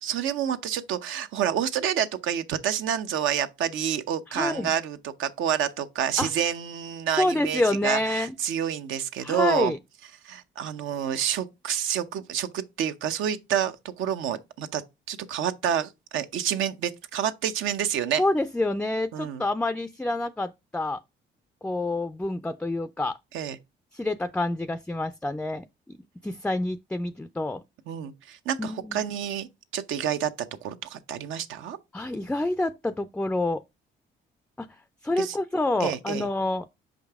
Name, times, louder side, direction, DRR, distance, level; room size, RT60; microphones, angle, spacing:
voice 1, 0.0-9.7 10.2-14.8 15.1-18.2 19.1-19.4 23.3-23.6 27.9-29.5 29.7-30.3 30.6-31.8 35.2-35.4 35.8-36.3, right 9 dB, 80° right, 0.7 m, -28 dB
voice 2, 4.3-4.7 6.2-6.3 7.2-8.4 9.2-9.8 18.2-21.0 21.6-23.2 23.9-26.0 26.2-27.6 28.6-29.0 31.9-33.6 34.6-34.7 35.0-36.7, left 2 dB, 5° left, 0.3 m, -27 dB
5.7 x 5.2 x 3.5 m
cardioid pair, 90°, 20 cm